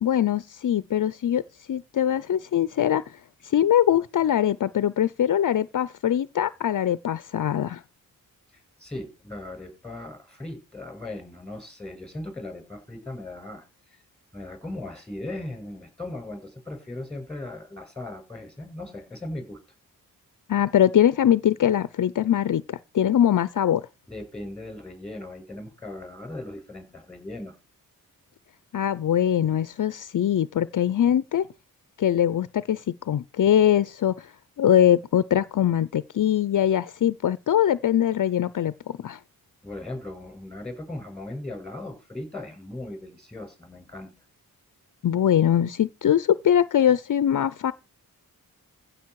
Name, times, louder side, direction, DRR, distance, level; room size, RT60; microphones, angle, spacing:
voice 1, 0.0-1.4 1.7-3.0 3.4-7.8 20.5-23.8 28.7-31.5 32.0-34.3 34.6-39.2 45.0-47.7, left 10 dB, 60° left, 0.6 m, -22 dB
voice 2, 8.5-14.0 14.3-19.6 24.1-27.6 39.6-44.1, left 1 dB, ahead, 7.1 m, -38 dB
15.5 x 7.0 x 4.7 m
wide cardioid pair, 85°, 36 cm